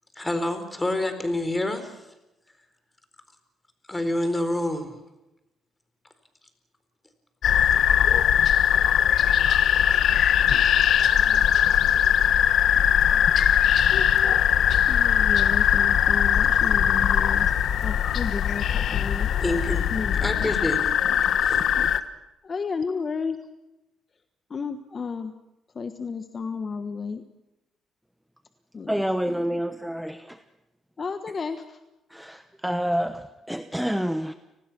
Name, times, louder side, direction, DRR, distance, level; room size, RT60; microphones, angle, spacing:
voice 1, 0.2-1.9 3.9-4.9 19.4-19.8 20.2-20.9 21.4-21.6, left 1 dB, 15° left, 9 dB, 4.3 m, -27 dB
sound 1, 7.4-22.0, left 9 dB, 70° left, 1.2 m, -20 dB
voice 2, 14.9-17.5 17.8-19.3 19.9-20.5 21.5-21.9 22.4-23.4 24.5-25.3 25.7-27.2 28.7-29.6 31.0-31.8, left 5 dB, 40° left, 9 dB, 1.4 m, -33 dB
voice 3, 28.9-30.4 32.1-34.3, equal, ahead, 10 dB, 1.0 m, -28 dB
29.5 x 19.5 x 6.1 m, 0.95 s
cardioid pair, 90°, 0 cm